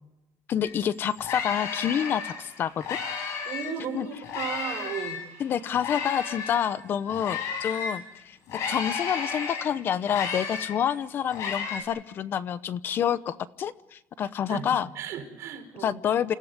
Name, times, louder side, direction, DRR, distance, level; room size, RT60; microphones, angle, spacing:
voice 1, 0.5-3.0 3.9-4.1 5.4-8.4 8.7-14.9 15.8-16.3, left 9 dB, 45° left, 15 dB, 0.8 m, -28 dB
sound 1, 0.6-0.7 1.0-3.8 4.2-8.0 8.5-11.8, left 6 dB, 65° left, 7.1 m, -33 dB
voice 2, 3.5-5.2 14.5-16.0, right 8 dB, 60° right, 4 dB, 5.2 m, -35 dB
28.5 x 16.5 x 9.6 m, 0.94 s
cardioid pair, 150°, 5 cm